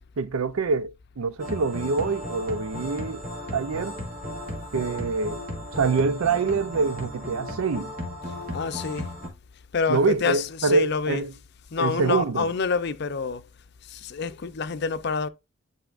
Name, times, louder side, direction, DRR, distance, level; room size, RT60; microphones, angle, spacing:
voice 1, 0.2-3.2 3.5-4.0 4.7-5.4 5.7-7.9 9.9-11.3 11.8-12.5, right 4 dB, 85° right, 0.5 m, -25 dB
sound 1, 1.4-9.3, left 1 dB, 45° right, 2.2 m, -35 dB
voice 2, 8.5-9.1 9.7-11.4 11.7-13.5 13.8-15.3, left 5 dB, 50° left, 0.5 m, -28 dB
10.5 x 4.2 x 2.4 m
head